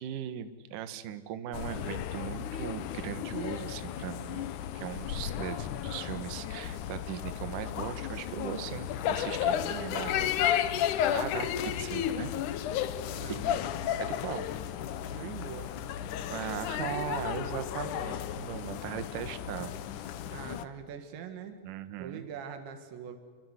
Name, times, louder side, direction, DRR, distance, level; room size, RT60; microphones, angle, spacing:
voice 1, 0.0-9.6 11.1-12.3 13.3-13.4 14.0-14.5 16.3-19.8 21.6-22.3, right 10 dB, 60° right, 10 dB, 2.5 m, -38 dB
sound 1, 1.5-20.6, left 10 dB, 80° left, 1.8 m, -33 dB
voice 2, 9.5-10.5 13.1-13.4 15.1-15.7 20.3-21.6 22.0-23.2, right 8 dB, 90° right, 7 dB, 4.1 m, -42 dB
28.5 x 23.5 x 8.1 m, 1.5 s
omnidirectional pair, 5.0 m